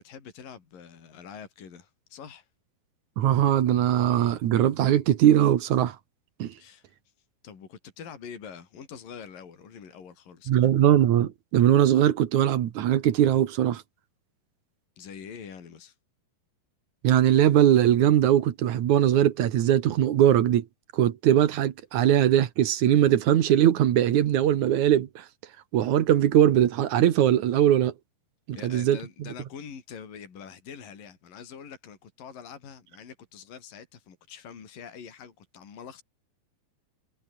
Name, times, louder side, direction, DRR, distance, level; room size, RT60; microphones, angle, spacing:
voice 1, 0.0-2.5 6.6-7.0 7.4-10.6 15.0-16.0 28.5-36.0, left 7 dB, 60° left, 5.5 m, -44 dB
voice 2, 3.2-6.0 6.4-6.5 10.5-13.8 17.0-20.7 20.9-25.2 25.7-27.9 28.5-29.0, right 11 dB, 60° right, 2.5 m, -21 dB
omnidirectional pair, 4.4 m